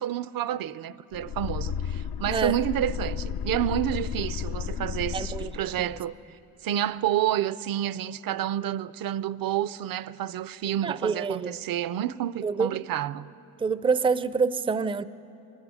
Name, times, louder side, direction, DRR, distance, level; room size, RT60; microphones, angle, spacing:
voice 1, 0.0-6.1 6.6-13.3, right 11 dB, 65° right, 0.5 m, -29 dB
sound 1, 1.1-6.0, left 8 dB, 80° left, 0.7 m, -33 dB
voice 2, 5.1-5.5 5.8-5.9 10.8-11.6 12.4-12.8 13.6-15.0, right 5 dB, 15° right, 0.4 m, -26 dB
23.0 x 13.5 x 9.7 m
cardioid pair, 110°, 37 cm